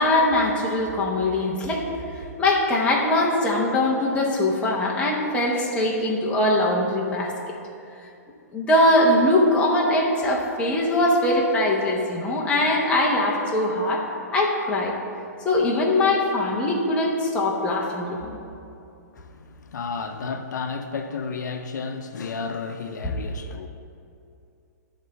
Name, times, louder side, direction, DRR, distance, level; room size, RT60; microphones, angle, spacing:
voice 1, 0.0-7.3 8.5-14.1 14.3-14.9 15.4-18.4 23.0-23.1, left 1 dB, 10° left, 0.9 m, -22 dB
voice 2, 19.1-23.7, left 5 dB, 85° left, 0.6 m, -32 dB
11.0 x 3.6 x 6.8 m
hypercardioid pair, 160°, 9 cm